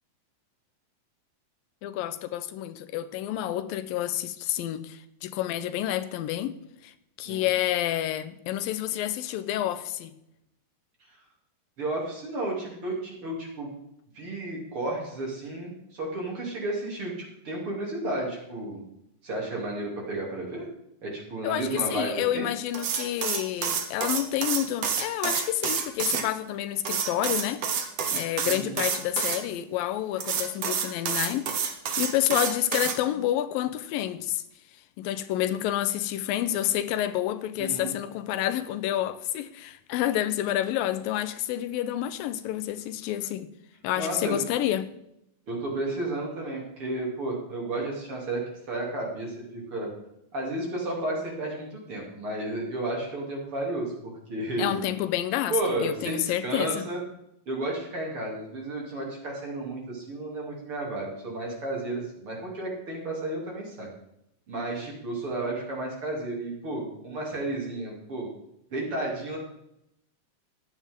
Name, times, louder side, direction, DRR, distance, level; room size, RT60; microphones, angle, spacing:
voice 1, 1.8-6.9 7.2-10.1 21.4-27.7 28.1-31.5 32.0-34.4 35.0-43.5 43.8-44.9 54.6-56.8, left 12 dB, 85° left, 2.5 m, -29 dB
voice 2, 11.8-13.7 14.1-17.1 17.4-18.8 19.2-20.7 21.0-22.5 28.4-28.8 37.6-37.9 44.0-44.4 45.5-49.9 50.3-54.8 55.5-57.0 57.5-63.9 64.5-68.3 68.7-69.4, right 2 dB, 40° right, 3.5 m, -32 dB
sound 1, 22.7-26.2 26.8-29.4 30.2-33.0, right 6 dB, 60° right, 1.9 m, -28 dB
15.0 x 10.5 x 3.7 m
omnidirectional pair, 4.0 m